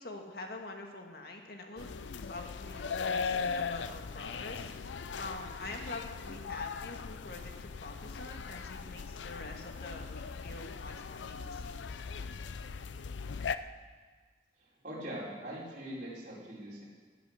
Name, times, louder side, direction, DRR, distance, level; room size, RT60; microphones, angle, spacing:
voice 1, 0.0-1.9 2.2-11.8, left 2 dB, 55° left, 3 dB, 1.8 m, -45 dB
sound 1, 1.8-13.5, left 5 dB, 80° left, 0.5 m, -39 dB
voice 2, 14.6-16.8, equal, 45° right, -6 dB, 4.6 m, -42 dB
17.0 x 9.3 x 6.4 m, 1.5 s
head